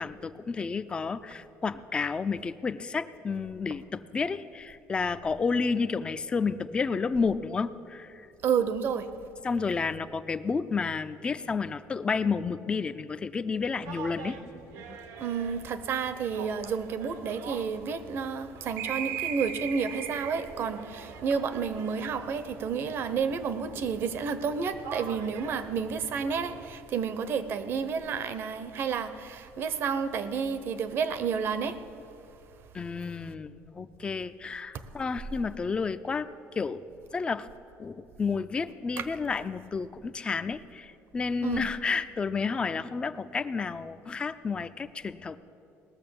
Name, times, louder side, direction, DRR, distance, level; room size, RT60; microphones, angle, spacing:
voice 1, 0.0-8.3 9.4-14.4 14.8-15.0 32.7-36.3 36.6-36.9 37.1-37.5 37.8-45.4, left 5 dB, 20° left, 12 dB, 0.4 m, -31 dB
voice 2, 8.4-9.1 15.2-31.8 39.0-39.1 41.4-41.7, right 6 dB, 45° right, 12 dB, 0.7 m, -30 dB
sound 1, 13.5-26.8, right 7 dB, 75° right, 1.0 m, -41 dB
18.5 x 6.7 x 7.0 m, 2.7 s
cardioid pair, 155°, 5 cm